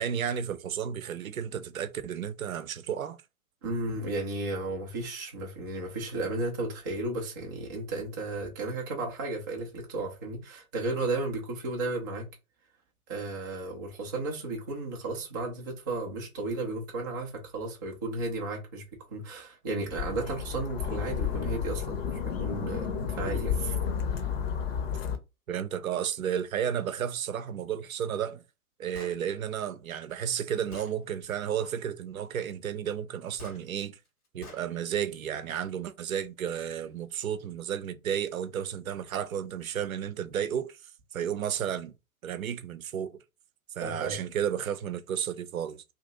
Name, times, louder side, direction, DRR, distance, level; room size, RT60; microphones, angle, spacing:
voice 1, 0.0-3.2 25.5-28.4 28.8-34.0 34.3-40.8 41.1-41.9 42.2-43.1 43.8-45.8, right 9 dB, 65° right, 0.6 m, -32 dB
voice 2, 3.6-12.3 13.1-23.8 43.8-44.2, right 2 dB, 15° right, 0.3 m, -34 dB
sound 1, 19.9-25.2, left 7 dB, 45° left, 0.8 m, -31 dB
Gunshot gunfire, 28.9-29.2 30.1-30.2 30.7-31.0 33.4-33.6 34.4-34.7, left 3 dB, 85° left, 1.4 m, -45 dB
2.9 x 2.6 x 3.7 m
figure-of-eight pair, 115°, 44 cm